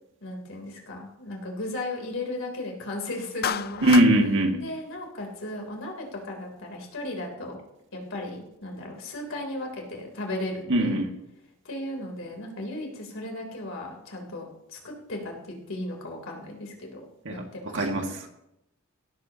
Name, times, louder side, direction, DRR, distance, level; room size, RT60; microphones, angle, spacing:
voice 1, 0.2-3.8 4.6-7.6 7.9-11.0 11.6-17.1 17.3-18.1, left 1 dB, 65° left, 1 dB, 3.5 m, -36 dB
Clapping, 3.4-4.1, left 8 dB, 45° left, 0.5 m, -29 dB
voice 2, 3.8-4.6 10.7-11.1 17.3-17.4 17.7-18.3, right 1 dB, 60° right, 3 dB, 2.0 m, -21 dB
17.0 x 13.5 x 2.9 m, 0.85 s
head